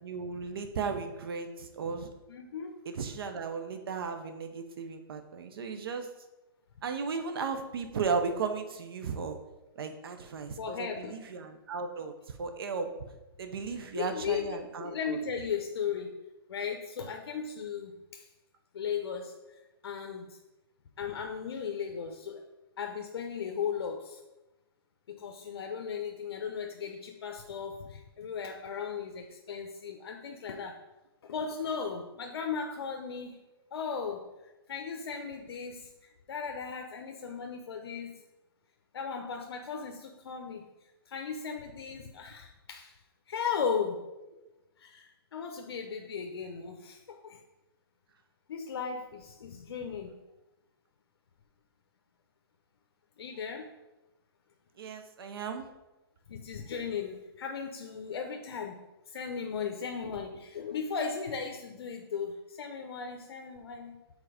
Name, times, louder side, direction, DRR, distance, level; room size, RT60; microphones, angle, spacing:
voice 1, 0.0-2.1 2.9-6.1 6.8-9.4 9.8-12.9 13.4-15.2 54.8-55.7, right 5 dB, 70° right, 7 dB, 0.7 m, -35 dB
voice 2, 2.3-2.8 10.6-11.2 13.6-16.2 16.5-18.3 18.7-20.4 21.0-22.4 22.8-24.2 25.1-30.8 31.2-33.4 33.7-34.3 34.7-38.1 38.9-40.7 41.1-43.0 43.3-44.0 44.8-47.4 48.5-50.2 53.2-53.7 56.3-58.8 59.1-64.0, left 6 dB, 75° left, 3 dB, 0.6 m, -36 dB
4.9 x 4.0 x 4.9 m, 1.0 s
hypercardioid pair, 155°, 13 cm